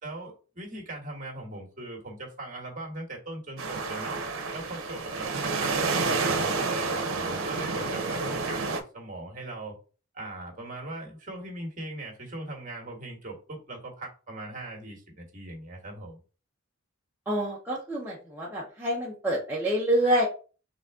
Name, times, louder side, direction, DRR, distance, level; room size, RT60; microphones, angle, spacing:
voice 1, 0.0-4.2 4.5-9.8 10.1-16.2, right 1 dB, 40° right, 1.4 m, -40 dB
sound 1, 3.6-8.8, right 4 dB, 70° right, 0.8 m, -29 dB
voice 2, 17.3-20.3, right 1 dB, 10° right, 0.8 m, -27 dB
4.0 x 3.5 x 3.6 m
head